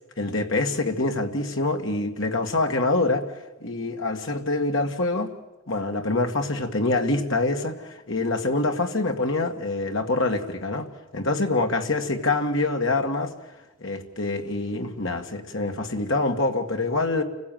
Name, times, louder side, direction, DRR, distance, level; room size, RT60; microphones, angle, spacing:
voice 1, 0.2-3.3 3.6-5.3 5.7-10.9 11.1-13.3 13.8-17.2, left 2 dB, 60° left, 4 dB, 2.1 m, -25 dB
29.5 x 16.0 x 9.3 m, 1.1 s
head